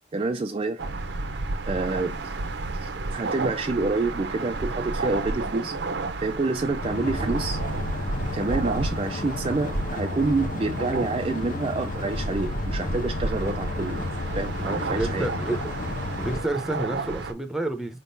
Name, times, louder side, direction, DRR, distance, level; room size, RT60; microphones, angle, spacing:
voice 1, 0.1-0.8 1.6-2.4 2.7-5.8 6.2-7.6 8.3-15.3, right 3 dB, 30° right, 0.4 m, -28 dB
sound 1, 0.8-17.3, right 3 dB, 65° right, 0.7 m, -31 dB
sound 2, 6.8-16.4, left 4 dB, 45° left, 0.4 m, -33 dB
voice 2, 14.9-15.6 16.2-18.0, right 2 dB, ahead, 0.7 m, -29 dB
4.7 x 3.7 x 2.6 m
head